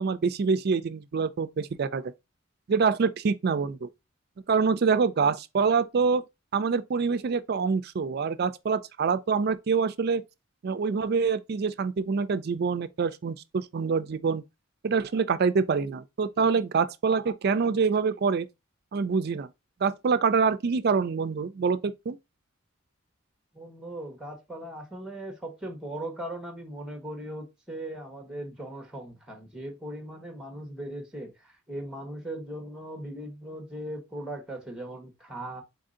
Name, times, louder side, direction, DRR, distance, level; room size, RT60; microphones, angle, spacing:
voice 1, 0.0-2.1 2.7-3.9 4.5-6.2 6.5-10.2 10.6-14.4 14.8-18.5 18.9-19.5 19.8-22.2, right 5 dB, 50° right, 0.4 m, -25 dB
voice 2, 23.5-35.6, right 1 dB, 5° right, 1.1 m, -39 dB
4.1 x 2.7 x 3.7 m
head